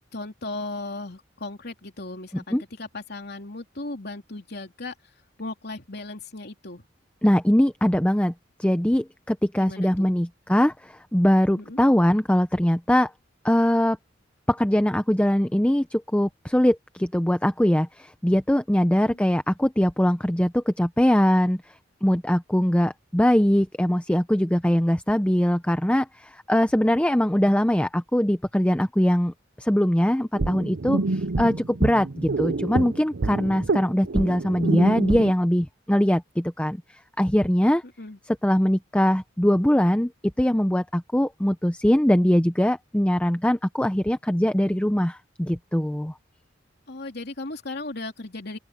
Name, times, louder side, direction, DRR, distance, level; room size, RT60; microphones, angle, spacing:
voice 1, 0.1-4.9 5.4-6.8 9.6-10.1 11.5-11.8 19.0-19.2 32.3-32.4 38.0-38.2 46.9-48.6, left 2 dB, 55° left, 3.3 m, -36 dB
voice 2, 7.2-8.3 8.6-13.1 13.4-14.0 14.5-21.6 22.0-36.8 37.2-37.8 38.4-40.1 40.4-46.1, equal, 5° left, 0.7 m, -22 dB
sound 1, 30.3-35.3, right 3 dB, 65° right, 0.7 m, -27 dB
open air
head